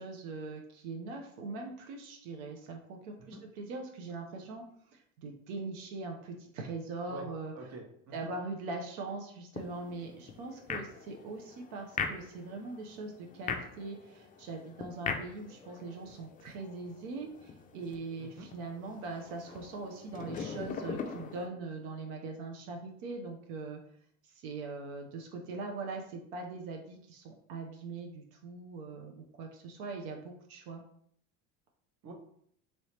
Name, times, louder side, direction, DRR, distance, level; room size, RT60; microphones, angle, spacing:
voice 1, 0.0-4.6 4.9-7.5 8.1-23.8 24.2-30.8, right 3 dB, 80° right, 2 dB, 0.7 m, -41 dB
voice 2, 7.5-8.3 18.2-18.5 32.0-32.1, right 3 dB, 40° right, 2 dB, 0.9 m, -46 dB
sound 1, 9.5-21.5, left 5 dB, 20° left, 0.3 m, -42 dB
3.0 x 2.8 x 3.1 m, 0.66 s
supercardioid pair, 90°, 41 cm